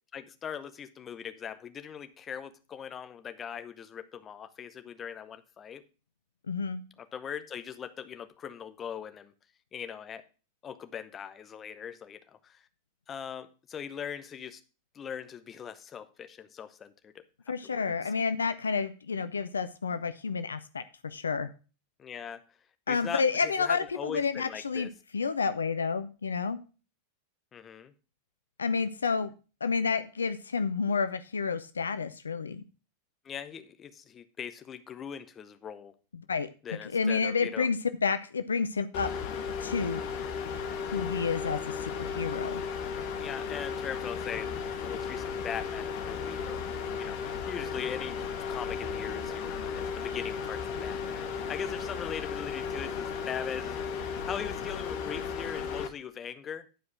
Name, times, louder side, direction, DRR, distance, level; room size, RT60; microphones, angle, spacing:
voice 1, 0.1-5.8 7.1-9.3 9.7-10.3 10.6-12.6 13.1-14.6 14.9-17.2 17.6-18.2 22.0-22.4 22.9-24.9 27.5-27.9 33.2-35.9 36.6-37.7 43.2-46.7 47.0-48.2 48.5-56.7, left 8 dB, 25° left, 0.9 m, -40 dB
voice 2, 6.5-6.8 17.5-21.5 22.9-24.9 25.1-26.6 28.6-29.3 29.6-32.6 36.1-39.1 39.6-40.0 40.8-42.6, left 5 dB, 75° left, 0.5 m, -30 dB
sound 1, 38.9-55.9, left 6 dB, 45° left, 1.1 m, -35 dB
10.0 x 4.8 x 6.1 m
figure-of-eight pair, 90°, 0 cm